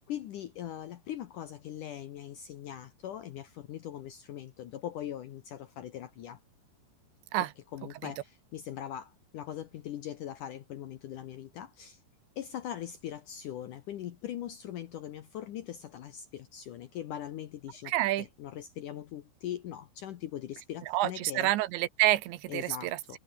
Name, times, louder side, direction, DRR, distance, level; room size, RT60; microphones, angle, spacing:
voice 1, 0.1-6.4 7.4-12.0 12.4-21.5 22.5-23.2, left 11 dB, 70° left, 2.0 m, -41 dB
voice 2, 17.9-18.3 20.9-23.2, right 16 dB, 85° right, 3.4 m, -28 dB
omnidirectional pair, 5.1 m